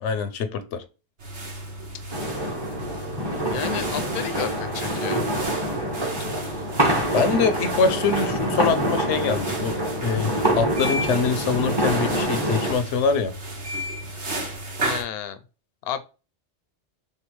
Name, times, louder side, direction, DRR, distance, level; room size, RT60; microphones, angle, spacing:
voice 1, 0.0-0.8 7.1-13.3, left 5 dB, 85° left, 1.0 m, -24 dB
sound 1, 1.2-15.0, right 1 dB, 70° right, 1.7 m, -34 dB
sound 2, 2.1-12.7, right 1 dB, 25° right, 1.0 m, -26 dB
voice 2, 3.4-5.3 6.0-6.4 14.8-15.4 15.8-16.0, left 9 dB, 65° left, 0.8 m, -32 dB
6.5 x 2.3 x 3.0 m
omnidirectional pair, 1.2 m